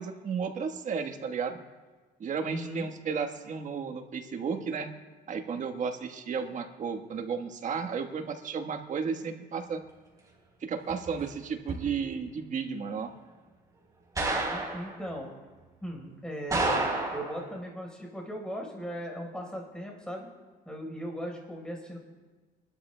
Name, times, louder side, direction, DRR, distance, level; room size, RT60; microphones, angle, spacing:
voice 1, 0.0-1.6 2.2-4.9 5.3-9.8 10.6-13.1, right 6 dB, 45° right, 6 dB, 1.3 m, -33 dB
voice 2, 2.4-2.9 14.5-15.3 15.8-20.3 20.7-22.0, equal, 5° left, 0 dB, 4.3 m, -38 dB
sound 1, 10.9-11.3 11.7-11.9 14.2-14.9 16.5-17.4, right 2 dB, 20° right, 4.0 m, -30 dB
26.0 x 12.5 x 2.2 m, 1.3 s
cardioid pair, 110°, 17 cm